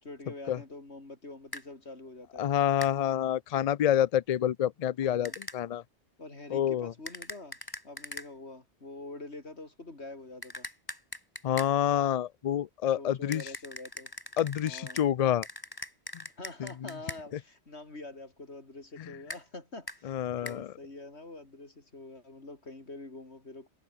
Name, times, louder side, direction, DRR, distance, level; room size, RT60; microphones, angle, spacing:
voice 1, 0.0-2.5 5.0-5.4 6.2-7.6 7.8-10.7 13.0-14.1 14.6-15.0 16.4-23.7, left 2 dB, 75° left, 4.3 m, -46 dB
castanets dry, 1.5-1.7 2.8-3.0 5.2-5.6 7.1-8.3 10.4-11.7 13.3-15.1 15.4-17.2 19.3-19.4 19.9-20.0 20.5-20.6, left 1 dB, 20° left, 4.5 m, -41 dB
voice 2, 2.4-5.8 6.5-6.9 11.4-13.5 14.4-15.5 16.6-16.7 20.0-20.7, left 10 dB, 55° left, 0.4 m, -28 dB
omnidirectional pair, 1.1 m